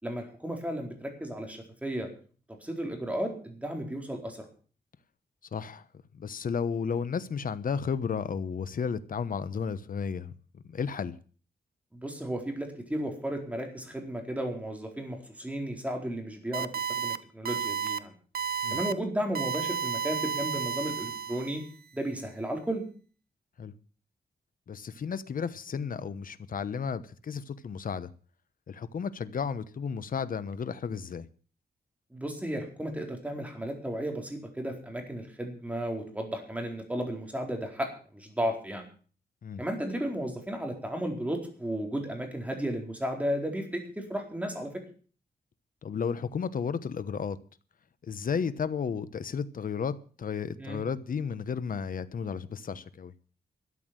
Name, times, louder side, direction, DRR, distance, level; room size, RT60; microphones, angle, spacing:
voice 1, 0.0-2.1 2.6-4.4 11.9-18.1 18.7-21.6 21.9-22.8 32.1-38.8 39.6-44.7 50.6-50.8, right 1 dB, 10° right, 4.4 m, -34 dB
voice 2, 5.5-5.8 6.1-10.3 10.7-11.1 18.6-18.8 23.6-23.7 24.7-28.1 28.7-31.3 39.4-39.6 45.8-47.4 48.0-53.1, left 6 dB, 60° left, 1.1 m, -33 dB
sound 1, 16.5-17.2 17.5-18.0 18.4-18.9 19.4-21.7, right 8 dB, 70° right, 0.8 m, -32 dB
13.0 x 8.5 x 8.9 m
wide cardioid pair, 120°, 16 cm